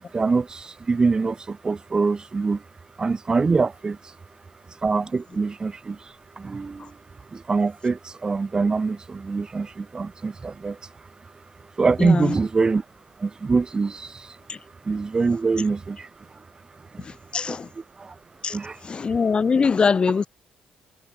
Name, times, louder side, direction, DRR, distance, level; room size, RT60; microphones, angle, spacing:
voice 1, 0.0-2.6 3.0-4.1 4.7-7.0 7.3-10.9 11.8-12.8 13.2-14.4 14.8-16.5 16.7-17.1 17.3-17.6 18.0-18.2 18.5-18.8, right 4 dB, 30° right, 3.1 m, -24 dB
voice 2, 12.0-12.4 14.5-14.6 17.0-17.7 18.4-20.3, left 5 dB, 35° left, 2.1 m, -23 dB
cardioid pair, 90°, 3 cm